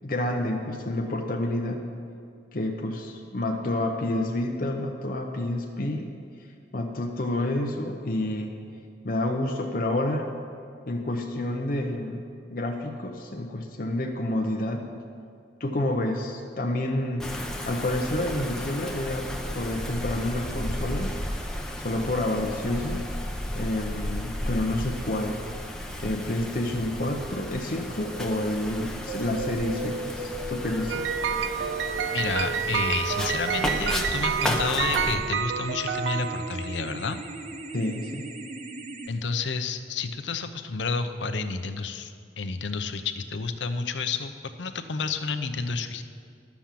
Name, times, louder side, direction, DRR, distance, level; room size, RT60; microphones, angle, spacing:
voice 1, 0.0-1.9 2.5-6.1 6.7-8.5 9.0-10.3 10.9-14.9 15.6-21.3 21.8-23.0 23.6-25.4 26.0-31.1 37.7-38.3, left 1 dB, 50° left, 2 dB, 0.8 m, -29 dB
Wind, 17.2-35.1, left 1 dB, 5° left, 0.7 m, -34 dB
sound 1, 29.1-39.1, right 2 dB, 40° right, 0.7 m, -37 dB
sound 2, 30.9-36.9, right 8 dB, 85° right, 0.4 m, -29 dB
voice 2, 32.1-37.2 39.1-46.0, left 4 dB, 90° left, 9 dB, 0.7 m, -30 dB
11.5 x 7.1 x 7.5 m, 2.3 s
head